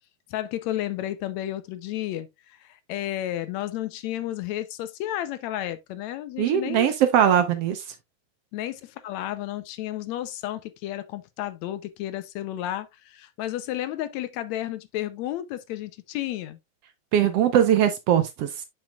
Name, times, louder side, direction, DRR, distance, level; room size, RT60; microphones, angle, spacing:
voice 1, 0.3-6.9 8.5-16.6, left 13 dB, 75° left, 1.9 m, -32 dB
voice 2, 6.4-7.9 17.1-18.6, right 10 dB, 70° right, 1.6 m, -21 dB
7.9 x 6.8 x 2.3 m
omnidirectional pair, 3.3 m